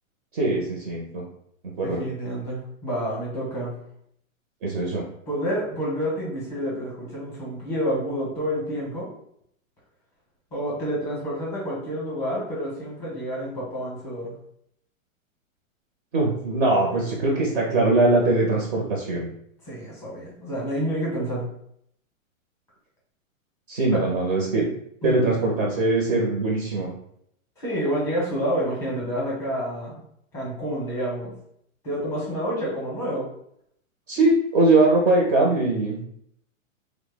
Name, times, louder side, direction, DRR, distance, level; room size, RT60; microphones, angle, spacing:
voice 1, 0.3-1.2 1.6-2.0 4.6-5.0 16.1-19.3 23.7-24.7 25.0-26.9 34.1-36.0, right 2 dB, 40° right, -2 dB, 0.7 m, -21 dB
voice 2, 1.8-3.7 5.3-9.1 10.5-14.3 19.6-21.5 23.9-24.0 25.0-25.3 27.6-30.0 30.3-31.3 31.8-33.3, equal, 5° left, -5 dB, 0.7 m, -28 dB
3.2 x 2.0 x 3.4 m, 0.71 s
hypercardioid pair, 160°, 41 cm